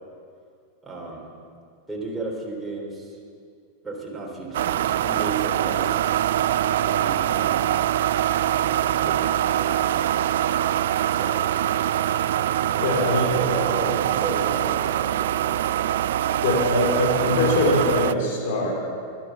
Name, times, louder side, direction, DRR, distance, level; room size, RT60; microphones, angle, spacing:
voice 1, 0.8-1.3 1.9-3.2 3.8-6.1 6.8-7.8 8.5-10.1 11.1-11.6 12.7-13.0 13.4-15.7, right 3 dB, 10° right, -3 dB, 3.4 m, -34 dB
sound 1, 4.5-18.1, right 11 dB, 70° right, 0.3 m, -23 dB
voice 2, 12.8-13.3 16.4-18.7, left 2 dB, 65° left, -1 dB, 3.1 m, -22 dB
11.5 x 11.5 x 7.1 m, 2.3 s
hypercardioid pair, 100°, 0 cm